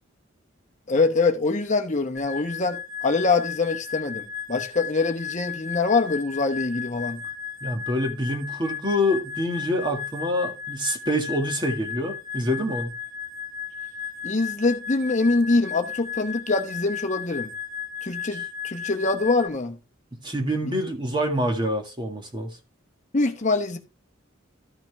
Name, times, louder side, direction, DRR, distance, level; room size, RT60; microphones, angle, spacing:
voice 1, 0.9-7.2 14.2-17.5 18.0-19.8 23.1-23.8, left 3 dB, 35° left, 0.9 m, -24 dB
sound 1, 2.2-19.5, left 8 dB, 60° left, 1.2 m, -35 dB
voice 2, 7.6-12.9 18.3-18.4 20.1-22.5, equal, 25° right, 1.9 m, -26 dB
13.0 x 5.8 x 3.5 m
head